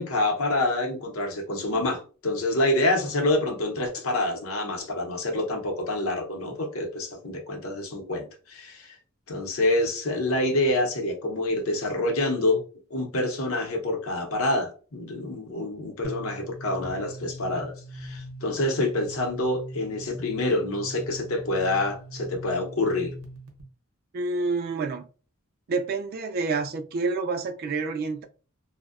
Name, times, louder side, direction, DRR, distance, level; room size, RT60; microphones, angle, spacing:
voice 1, 0.0-9.0 9.3-12.6 12.9-23.1, left 2 dB, 70° left, 0.7 m, -27 dB
sound 1, 16.0-23.6, equal, 75° right, 0.6 m, -40 dB
voice 2, 24.1-25.1 25.7-28.2, right 3 dB, 45° right, 0.3 m, -28 dB
2.6 x 2.1 x 2.4 m
head